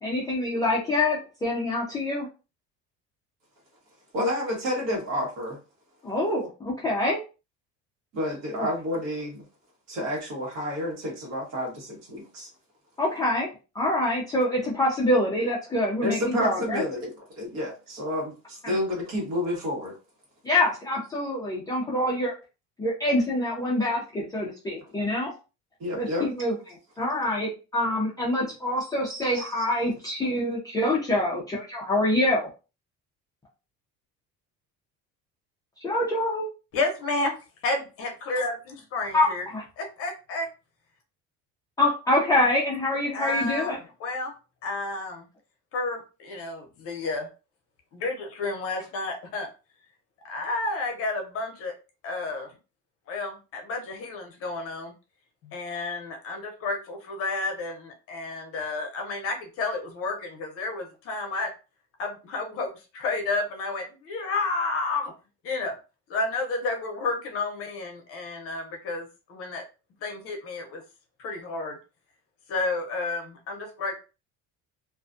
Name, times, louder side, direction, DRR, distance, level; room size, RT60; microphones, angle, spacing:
voice 1, 0.0-2.3 6.0-7.2 8.6-8.7 13.0-13.5 13.7-16.8 18.6-18.7 20.4-22.3 22.8-25.3 26.0-26.5 27.0-32.5 35.8-36.5 39.1-39.6 41.8-43.8, left 1 dB, 15° left, -5 dB, 0.3 m, -25 dB
voice 2, 4.1-5.6 8.1-9.4 9.9-12.5 16.0-20.0 25.8-26.3 29.1-29.5, left 1 dB, 60° right, -1 dB, 1.2 m, -30 dB
voice 3, 36.7-37.3 37.6-39.5 39.8-40.5 43.1-44.3 44.6-45.3 45.7-47.3 47.9-49.5 50.2-51.7 52.0-52.5 53.1-54.9 55.4-61.5 62.0-65.1 65.4-65.7 66.1-69.6 70.0-70.8 71.2-71.8 72.5-73.9, left 3 dB, 50° left, 3 dB, 0.7 m, -31 dB
2.4 x 2.2 x 2.4 m, 0.32 s
cardioid pair, 175°, 30 cm